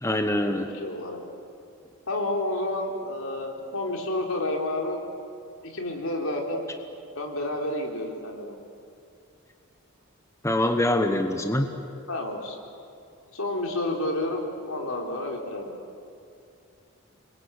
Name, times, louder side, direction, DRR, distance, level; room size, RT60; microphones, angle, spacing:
voice 1, 0.0-0.7 10.4-11.7, left 1 dB, 15° left, 6 dB, 1.1 m, -24 dB
voice 2, 0.5-1.2 2.1-5.0 5.6-6.7 7.2-8.5 12.1-12.6 13.3-15.8, left 1 dB, 80° left, 1 dB, 4.1 m, -30 dB
27.5 x 22.5 x 8.4 m, 2.6 s
head